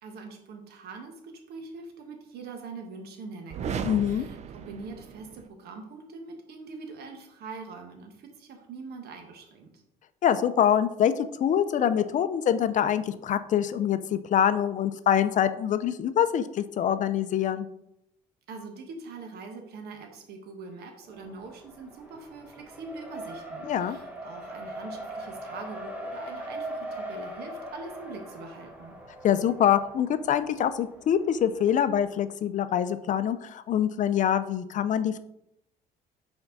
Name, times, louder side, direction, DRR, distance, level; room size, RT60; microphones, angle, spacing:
voice 1, 0.0-9.8 18.5-28.9, right 4 dB, 70° right, 4 dB, 1.3 m, -43 dB
sound 1, 3.5-5.5, right 6 dB, 40° right, 0.5 m, -36 dB
voice 2, 3.8-4.3 10.2-11.1 11.4-17.7 23.6-24.0 29.2-35.2, left 9 dB, 50° left, 12 dB, 0.5 m, -25 dB
Race car auto racing, 21.1-32.1, right 1 dB, 10° right, 1.3 m, -41 dB
5.7 x 4.4 x 4.0 m, 0.80 s
cardioid pair, 110°, 17 cm